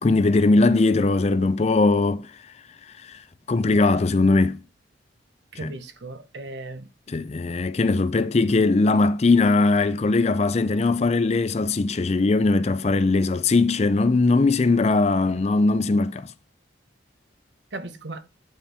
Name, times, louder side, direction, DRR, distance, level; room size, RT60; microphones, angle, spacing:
voice 1, 0.0-2.3 3.1-3.2 3.5-4.6 5.6-5.7 7.1-16.3, left 3 dB, 35° left, 0.4 m, -20 dB
voice 2, 5.5-6.9 17.7-18.2, right 2 dB, 60° right, 0.8 m, -36 dB
9.5 x 4.4 x 3.4 m
head